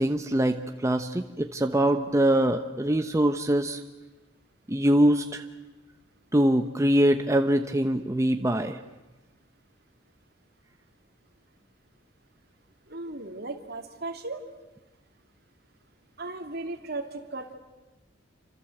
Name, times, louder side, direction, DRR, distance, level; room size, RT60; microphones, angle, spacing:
voice 1, 0.0-3.8 4.7-5.4 6.3-8.8, right 1 dB, 15° right, 6 dB, 0.9 m, -23 dB
voice 2, 12.9-14.4 16.2-17.6, right 2 dB, 55° right, 5 dB, 2.8 m, -36 dB
28.0 x 26.0 x 7.9 m, 1.2 s
head